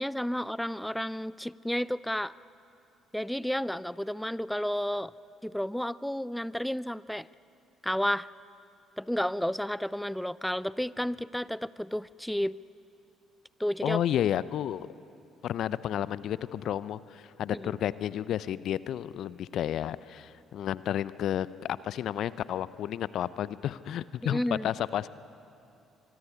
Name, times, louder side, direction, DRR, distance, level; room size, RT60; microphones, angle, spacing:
voice 1, 0.0-2.3 3.1-5.1 5.4-7.3 7.8-8.3 9.0-12.6 13.6-14.0 17.5-17.8 24.2-24.7, equal, 5° left, 19 dB, 0.5 m, -31 dB
voice 2, 13.8-14.9 15.4-25.1, left 11 dB, 60° left, 17 dB, 0.6 m, -31 dB
24.5 x 23.5 x 9.5 m, 2.7 s
hypercardioid pair, 50°, 0 cm